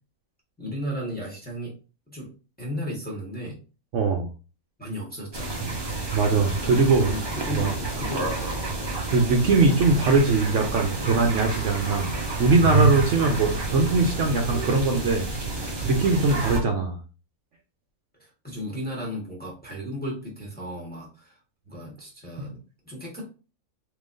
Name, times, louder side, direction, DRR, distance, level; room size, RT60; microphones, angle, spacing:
voice 1, 0.6-1.7 2.1-2.3 2.6-3.6 4.8-5.7 6.6-8.8 15.9-16.3 18.2-21.4 21.7-22.5 22.8-23.3, equal, 5° left, -2 dB, 1.0 m, -35 dB
voice 2, 3.9-4.3 5.9-7.1 7.5-7.7 9.1-12.1 12.4-15.2 15.6-17.0, right 3 dB, 65° right, 2 dB, 0.9 m, -21 dB
sound 1, 5.3-16.6, right 4 dB, 25° right, 0.6 m, -29 dB
3.7 x 3.0 x 2.5 m, 0.34 s
omnidirectional pair, 1.5 m